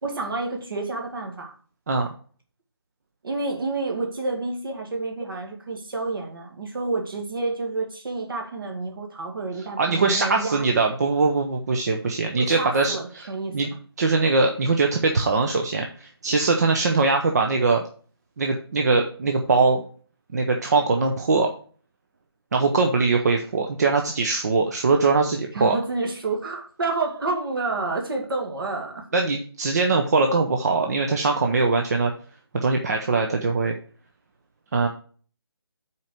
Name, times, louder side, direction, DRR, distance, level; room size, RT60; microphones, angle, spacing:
voice 1, 0.0-1.5 3.2-10.7 12.4-13.6 25.5-29.1, right 3 dB, 60° right, 2 dB, 2.2 m, -29 dB
voice 2, 9.8-13.3 13.5-13.7 14.0-17.8 18.4-19.8 20.3-21.5 22.5-25.7 29.1-32.1 32.5-33.7 34.7-34.9, right 3 dB, 40° right, 3 dB, 0.8 m, -22 dB
5.7 x 4.6 x 6.4 m, 0.43 s
figure-of-eight pair, 165°, 14 cm